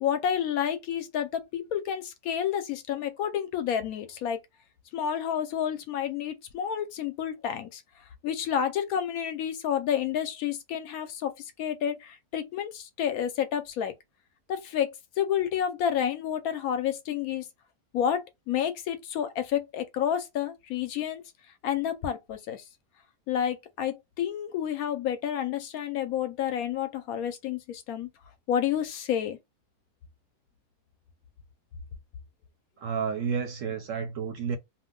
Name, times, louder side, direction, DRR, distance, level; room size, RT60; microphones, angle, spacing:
voice 1, 0.0-4.4 4.9-7.8 8.2-11.3 11.6-13.9 14.5-17.5 17.9-21.2 21.6-22.6 23.3-28.1 28.5-29.4, left 9 dB, 70° left, 0.9 m, -30 dB
voice 2, 32.8-34.6, right 6 dB, 65° right, 0.8 m, -31 dB
2.7 x 2.1 x 3.6 m
omnidirectional pair, 1.7 m